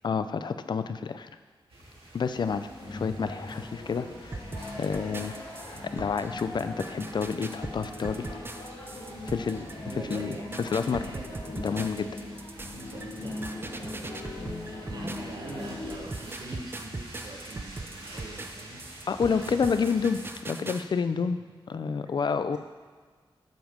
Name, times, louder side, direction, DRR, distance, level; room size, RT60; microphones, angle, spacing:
voice 1, 0.0-1.3 2.1-4.4 4.8-5.4 5.9-8.3 9.3-9.7 10.1-11.1 11.6-12.1 19.1-21.4 21.7-22.6, left 5 dB, 55° left, 10 dB, 0.4 m, -29 dB
sound 1, 1.7-20.3, right 1 dB, 85° right, 2.0 m, -48 dB
sound 2, 2.8-16.1, left 2 dB, 80° left, 2.6 m, -41 dB
sound 3, 4.3-15.5 15.9-20.8, right 2 dB, 25° right, 0.5 m, -40 dB
voice 2, 9.8-11.9 12.7-19.6 21.2-21.3 22.5-22.6, right 2 dB, 50° right, 0 dB, 1.0 m, -44 dB
7.8 x 5.2 x 5.2 m, 1.5 s
wide cardioid pair, 125°, 9 cm